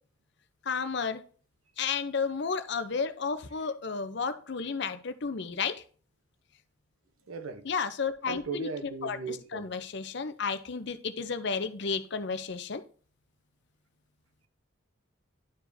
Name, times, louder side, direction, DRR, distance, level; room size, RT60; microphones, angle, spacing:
voice 1, 0.6-1.2 1.8-5.8 7.6-8.7 9.0-12.8, left 5 dB, 55° left, 0.6 m, -32 dB
voice 2, 7.3-7.7 8.3-9.7, right 4 dB, 90° right, 0.8 m, -37 dB
11.5 x 4.9 x 2.7 m
head